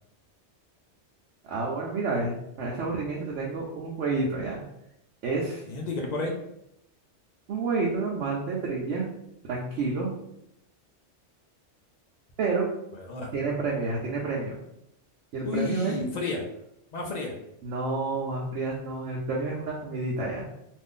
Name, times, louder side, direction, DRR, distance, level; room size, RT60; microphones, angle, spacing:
voice 1, 1.4-4.6 5.2-5.6 7.5-9.1 9.4-10.2 12.4-12.7 13.3-14.6 15.3-16.0 17.6-20.4, right 3 dB, 80° right, -4 dB, 0.9 m, -29 dB
voice 2, 5.7-6.4 12.9-13.3 15.4-16.5 16.9-17.4, left 3 dB, 55° left, 0 dB, 0.5 m, -31 dB
2.5 x 2.5 x 3.6 m, 0.79 s
omnidirectional pair, 1.2 m